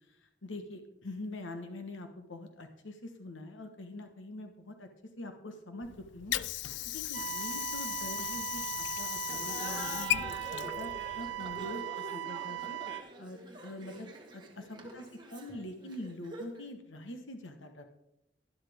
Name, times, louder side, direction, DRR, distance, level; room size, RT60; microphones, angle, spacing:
voice 1, 0.2-4.9 5.2-10.9 11.2-17.9, left 1 dB, 85° left, 6 dB, 1.3 m, -44 dB
Water / Sink (filling or washing), 5.8-11.8, left 14 dB, 65° left, 0.3 m, -37 dB
sound 1, 7.1-13.0, right 16 dB, 75° right, 0.8 m, -39 dB
Laughter, 9.2-16.7, equal, 25° right, 1.5 m, -46 dB
12.0 x 11.5 x 3.6 m, 0.81 s
head